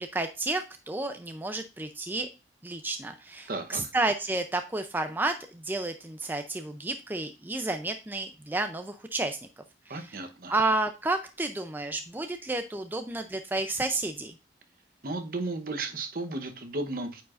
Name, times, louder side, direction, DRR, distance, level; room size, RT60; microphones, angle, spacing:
voice 1, 0.0-2.3 2.6-9.4 9.9-10.2 10.5-14.3, right 2 dB, 10° right, 0.4 m, -31 dB
voice 2, 3.5-3.8 9.9-10.5 15.0-17.2, right 2 dB, 55° right, 0.9 m, -34 dB
9.1 x 4.8 x 2.4 m
head